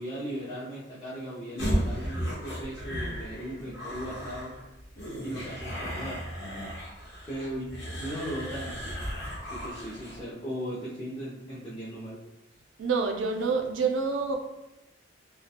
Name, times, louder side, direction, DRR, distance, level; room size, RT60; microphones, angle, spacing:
voice 1, 0.0-4.5 5.2-6.2 7.3-9.0 9.5-12.2, equal, 25° left, -9 dB, 0.5 m, -37 dB
sound 1, 1.6-10.2, equal, 65° left, 1.0 m, -35 dB
voice 2, 12.8-14.3, right 4 dB, 70° right, 3 dB, 0.4 m, -27 dB
2.3 x 2.1 x 2.8 m, 0.92 s
head